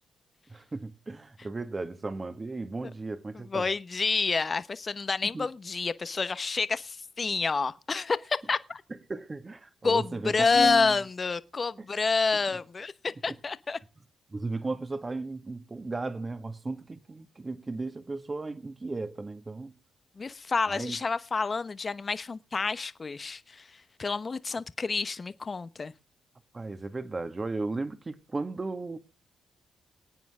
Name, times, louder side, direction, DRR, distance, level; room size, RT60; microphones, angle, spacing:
voice 1, 0.5-3.7 5.3-5.5 9.1-11.0 13.3-13.4 14.3-19.7 20.7-21.0 24.5-24.6 26.5-29.0, right 3 dB, 30° right, 1.8 m, -35 dB
voice 2, 3.5-8.8 9.8-13.8 20.2-25.9, left 4 dB, 40° left, 0.9 m, -28 dB
22.0 x 9.3 x 3.6 m
supercardioid pair, 45°, 0 cm